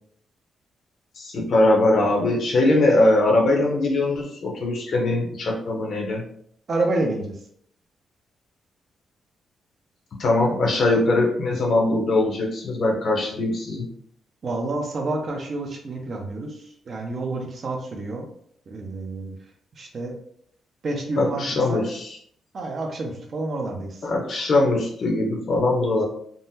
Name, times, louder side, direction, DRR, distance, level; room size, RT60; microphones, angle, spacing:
voice 1, 1.2-6.2 10.2-13.9 21.2-22.1 24.0-26.0, left 2 dB, 45° left, 0 dB, 0.6 m, -21 dB
voice 2, 6.7-7.3 14.4-16.6 16.9-18.3 18.7-19.3 19.8-20.1 20.8-21.8 22.5-24.0, right 2 dB, 40° right, 2 dB, 0.5 m, -28 dB
3.6 x 2.0 x 2.7 m, 0.65 s
wide cardioid pair, 170°, 0 cm